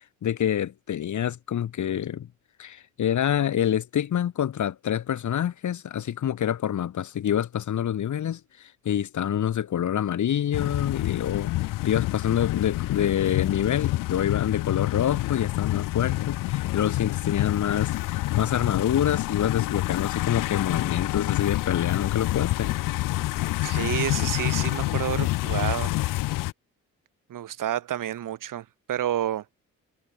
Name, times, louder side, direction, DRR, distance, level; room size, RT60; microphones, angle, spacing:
voice 1, 0.2-2.3 2.6-11.5 11.8-22.7, left 10 dB, 60° left, 1.3 m, -27 dB
sound 1, 10.5-26.5, left 18 dB, 80° left, 0.5 m, -27 dB
voice 2, 23.6-25.9 27.3-29.4, right 11 dB, 75° right, 1.9 m, -29 dB
supercardioid pair, 60°, 33 cm